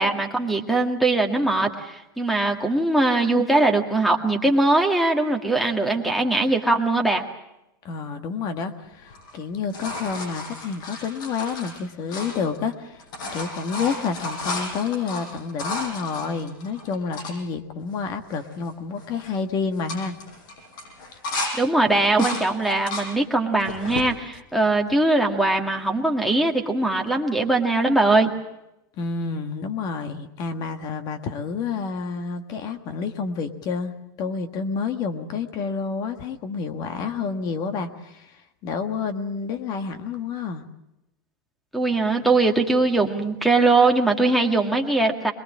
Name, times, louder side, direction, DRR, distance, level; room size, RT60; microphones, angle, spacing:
voice 1, 0.0-7.2 21.6-28.3 41.7-45.3, right 2 dB, ahead, 5 dB, 1.9 m, -21 dB
voice 2, 7.8-13.0 13.3-20.1 29.0-40.7, left 5 dB, 35° left, 8 dB, 1.6 m, -29 dB
sound 1, 9.1-12.7 13.0-17.3 17.9-18.0 18.2-18.7 19.0-19.3 19.7-21.5 21.9-23.1 23.6-24.1 24.7-25.5 27.1-27.2, left 2 dB, 65° left, 7.1 m, -33 dB
23.0 x 21.5 x 7.5 m, 0.88 s
supercardioid pair, 150°, 11 cm